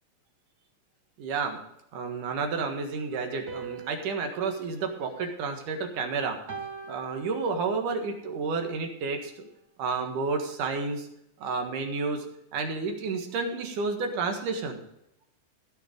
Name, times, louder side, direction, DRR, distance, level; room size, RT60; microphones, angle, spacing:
voice 1, 1.2-1.6 1.9-6.4 6.9-9.5 9.8-11.1 11.4-12.2 12.5-14.8, right 4 dB, 90° right, 4 dB, 3.2 m, -30 dB
sound 1, 3.5-5.9 6.5-8.0, right 5 dB, 55° right, 1.0 m, -43 dB
15.5 x 6.8 x 5.2 m, 0.78 s
omnidirectional pair, 3.5 m